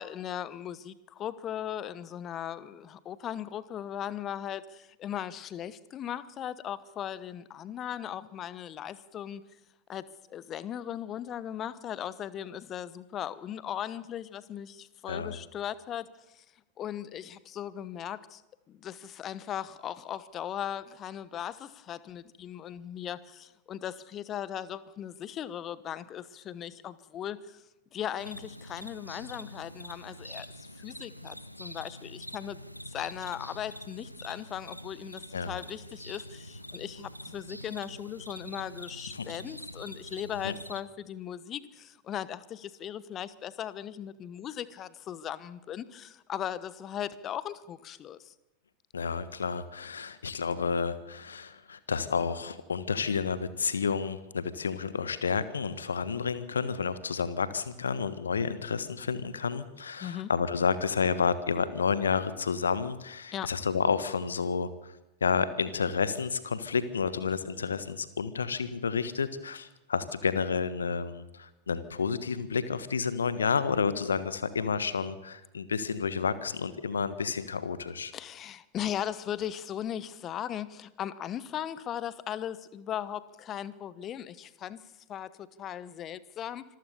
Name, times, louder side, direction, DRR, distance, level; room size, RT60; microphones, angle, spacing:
voice 1, 0.0-9.4 9.9-16.4 16.8-18.4 18.7-27.6 27.9-32.6 32.9-48.3 60.0-60.3 63.3-63.5 78.1-84.8 85.1-86.6, left 10 dB, 30° left, 17 dB, 1.0 m, -38 dB
sound 1, 28.2-40.8, equal, 90° left, 1.0 m, -45 dB
voice 2, 48.9-64.7 65.2-78.1, left 6 dB, 70° left, 14 dB, 1.4 m, -30 dB
26.0 x 14.5 x 7.0 m, 0.98 s
figure-of-eight pair, 90°, 0 cm